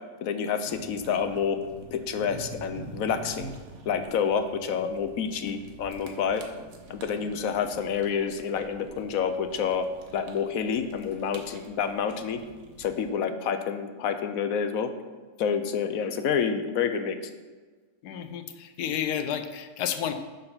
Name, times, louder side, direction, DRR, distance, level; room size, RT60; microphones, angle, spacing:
voice 1, 0.2-1.6 1.9-3.5 3.9-6.4 6.9-9.9 10.1-12.4 12.8-14.9 15.4-17.2, left 7 dB, 70° left, 9 dB, 1.0 m, -28 dB
sound 1, 0.6-13.1, right 3 dB, 65° right, 1.4 m, -46 dB
voice 2, 18.0-20.1, left 9 dB, 90° left, 8 dB, 1.3 m, -31 dB
6.7 x 6.6 x 5.6 m, 1.4 s
omnidirectional pair, 1.7 m